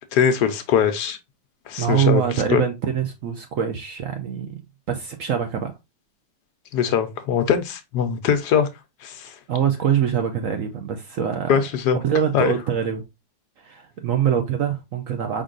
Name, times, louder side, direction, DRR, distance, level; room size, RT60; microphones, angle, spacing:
voice 1, 0.1-1.2 1.7-2.2 2.5-2.6 6.7-8.7 9.0-9.3 11.5-12.0 12.3-12.5, left 8 dB, 70° left, 1.2 m, -21 dB
voice 2, 1.8-4.6 4.9-5.7 9.5-11.6 11.9-13.0 13.6-15.4, right 8 dB, 65° right, 0.9 m, -24 dB
5.2 x 3.8 x 2.4 m
omnidirectional pair, 1.9 m